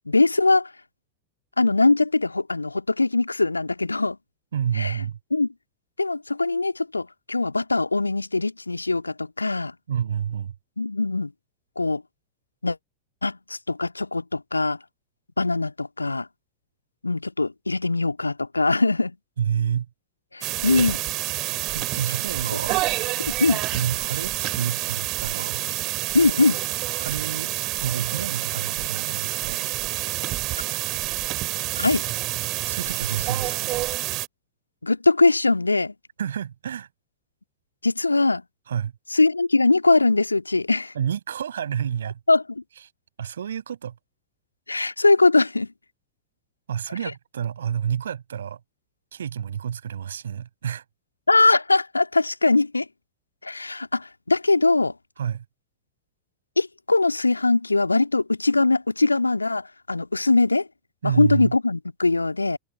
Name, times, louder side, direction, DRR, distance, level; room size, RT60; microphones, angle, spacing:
voice 1, 0.1-0.7 1.6-4.2 4.7-5.0 5.3-5.5 6.0-9.7 10.8-11.3 11.8-12.0 12.6-12.8 13.2-14.8 15.4-16.3 17.0-19.2 20.3-21.0 23.3-23.6 26.1-26.6 31.8-32.0 34.8-35.9 37.8-38.4 39.1-40.9 42.3-42.4 44.7-45.7 51.3-52.9 53.4-54.9 56.6-60.7 61.0-62.6, left 3 dB, 80° left, 2.0 m, -21 dB
voice 2, 4.5-5.2 9.9-10.5 19.4-19.9 21.7-22.8 23.7-25.6 27.0-27.5 27.8-29.7 32.7-33.7 36.2-36.9 38.7-38.9 40.9-42.2 43.2-43.9 46.7-48.6 49.1-50.8 55.2-55.4 61.0-61.5, right 8 dB, 65° right, 6.2 m, -29 dB
sound 1, 20.4-34.3, right 19 dB, 40° right, 6.2 m, -28 dB
figure-of-eight pair, 90°, 0 cm